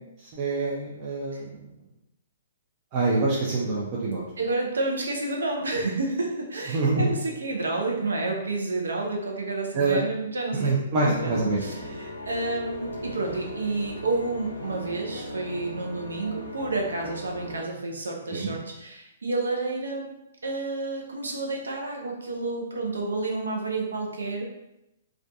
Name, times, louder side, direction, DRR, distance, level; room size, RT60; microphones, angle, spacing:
voice 1, 0.2-1.7 2.9-4.2 6.7-7.1 9.7-10.0 10.5-12.0 18.3-18.5, right 3 dB, 35° right, -5 dB, 0.5 m, -26 dB
voice 2, 4.4-24.4, right 2 dB, 80° right, 0 dB, 0.6 m, -30 dB
sound 1, 10.9-17.6, left 1 dB, 85° left, 0.5 m, -38 dB
2.5 x 2.3 x 2.3 m, 0.88 s
hypercardioid pair, 125°, 0 cm